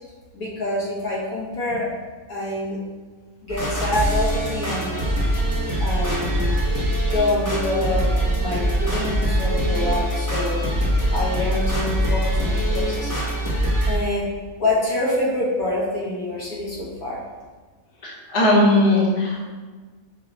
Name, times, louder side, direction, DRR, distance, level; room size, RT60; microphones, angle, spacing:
voice 1, 0.3-1.9 2.3-2.8 3.4-5.0 5.8-6.5 6.8-8.1 8.4-10.6 11.1-13.1 13.6-14.3 14.6-17.2, left 2 dB, 75° left, -5 dB, 1.5 m, -26 dB
sound 1, 3.5-14.0, right 1 dB, 20° left, 0.6 m, -23 dB
voice 2, 18.0-19.6, left 1 dB, 35° left, -5 dB, 1.0 m, -18 dB
5.4 x 2.3 x 4.0 m, 1.4 s
omnidirectional pair, 1.5 m